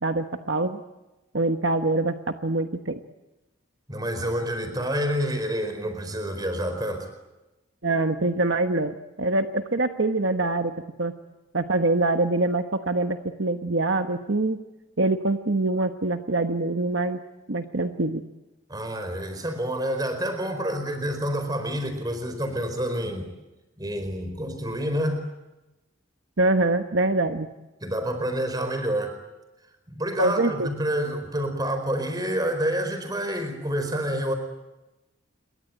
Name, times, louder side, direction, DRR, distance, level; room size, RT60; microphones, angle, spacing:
voice 1, 0.0-0.8 1.3-2.1 2.4-3.0 7.8-10.7 11.0-11.1 11.5-14.6 15.0-17.2 17.5-18.2 26.4-27.5 30.2-30.7, right 2 dB, 65° right, 7 dB, 1.2 m, -24 dB
voice 2, 3.9-7.1 18.7-23.3 23.8-25.2 27.8-29.2 29.9-34.4, equal, 20° right, 8 dB, 4.6 m, -28 dB
27.5 x 22.5 x 9.1 m, 1.0 s
head